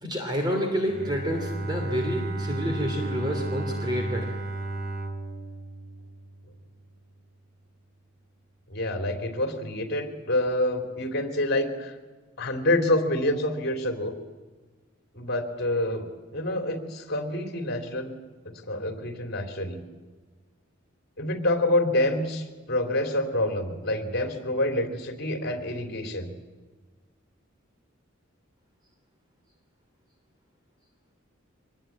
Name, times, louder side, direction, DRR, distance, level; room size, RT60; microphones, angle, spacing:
voice 1, 0.0-4.3, equal, 20° right, 3 dB, 2.9 m, -29 dB
Bowed string instrument, 0.9-6.8, right 2 dB, 50° right, 2.6 m, -33 dB
voice 2, 8.7-11.9 12.4-14.1 15.1-16.0 16.3-18.1 18.4-19.8 21.2-26.3, left 1 dB, 55° left, 6 dB, 3.4 m, -27 dB
24.5 x 20.5 x 8.7 m, 1.3 s
head